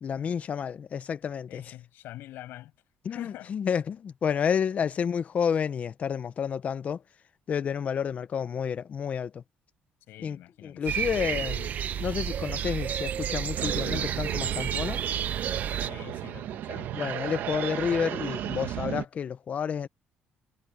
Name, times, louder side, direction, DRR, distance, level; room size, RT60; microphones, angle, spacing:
voice 1, 0.0-1.6 3.0-7.0 7.5-9.4 10.2-10.4 10.6-15.0 16.9-19.9, left 7 dB, 40° left, 0.9 m, -30 dB
voice 2, 1.5-2.7 3.1-3.5 10.1-11.0 15.8-16.9, left 15 dB, 85° left, 7.9 m, -45 dB
sound 1, 10.9-15.9, right 9 dB, 50° right, 1.0 m, -31 dB
sound 2, 13.6-19.1, right 12 dB, 75° right, 1.4 m, -34 dB
cardioid pair, 135°, 3 cm